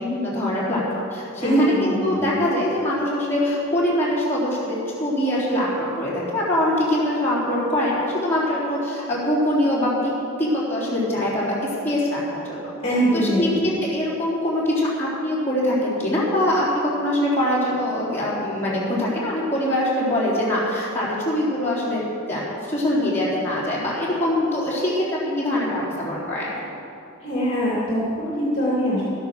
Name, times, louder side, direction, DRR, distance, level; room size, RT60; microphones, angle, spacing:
voice 1, 0.0-10.1 10.4-12.7 13.1-26.5, left 1 dB, 10° left, -8 dB, 3.6 m, -23 dB
voice 2, 1.4-2.3 12.8-13.7 27.2-29.0, right 1 dB, 30° left, -7 dB, 2.7 m, -22 dB
13.0 x 10.5 x 6.6 m, 2.8 s
head